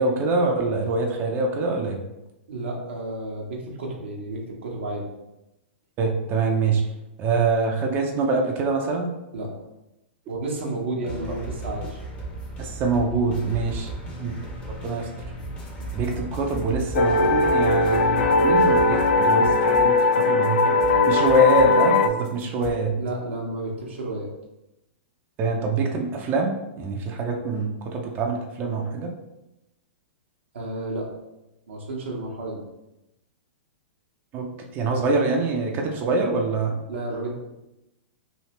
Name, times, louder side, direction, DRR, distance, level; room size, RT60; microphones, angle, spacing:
voice 1, 0.0-2.0 6.0-6.8 7.2-9.1 12.6-13.9 14.2-14.3 14.8-15.1 15.9-20.8 21.1-22.9 25.4-29.1 34.3-34.5 34.7-36.8, right 3 dB, 30° right, 1 dB, 0.5 m, -24 dB
voice 2, 2.5-5.1 9.3-9.5 10.3-12.0 13.8-13.9 23.0-24.3 30.5-31.1 31.7-32.6 36.9-37.3, right 2 dB, 75° right, -2 dB, 0.8 m, -31 dB
sound 1, 11.0-19.0, right 2 dB, 20° left, 0.8 m, -35 dB
sound 2, 15.4-22.7, right 1 dB, 50° left, 0.9 m, -38 dB
sound 3, 17.0-22.1, left 3 dB, 70° left, 0.3 m, -19 dB
3.1 x 2.7 x 2.9 m, 0.93 s
hypercardioid pair, 110°, 6 cm